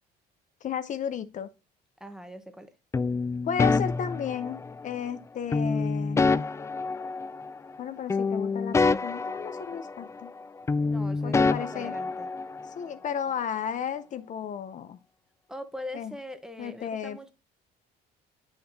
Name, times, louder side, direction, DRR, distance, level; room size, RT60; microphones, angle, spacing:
voice 1, 0.6-1.5 3.4-6.3 7.8-10.3 11.2-11.9 12.8-15.0 15.9-16.1 16.6-17.3, left 8 dB, 50° left, 0.7 m, -34 dB
voice 2, 2.0-2.7 10.8-12.3 15.5-17.3, left 1 dB, 5° right, 1.0 m, -41 dB
sound 1, 2.9-4.9 5.5-7.8 8.1-10.4 10.7-12.7, left 4 dB, 15° left, 0.3 m, -27 dB
8.4 x 5.8 x 2.7 m
cardioid pair, 110°, 17 cm